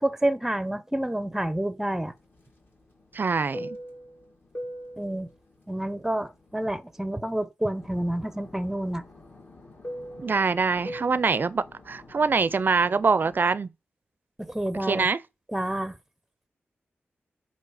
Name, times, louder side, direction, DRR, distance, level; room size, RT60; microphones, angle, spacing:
voice 1, 0.0-2.1 5.0-5.3 5.7-9.0 14.4-15.1 15.5-16.0, right 1 dB, 5° right, 0.6 m, -28 dB
Fixed-wing aircraft airplane, 1.9-7.3 7.6-13.5, equal, 50° left, 2.0 m, -43 dB
voice 2, 3.1-3.8 10.2-13.7 14.9-15.2, right 4 dB, 50° right, 0.4 m, -24 dB
7.8 x 2.8 x 4.8 m
cardioid pair, 70°, 4 cm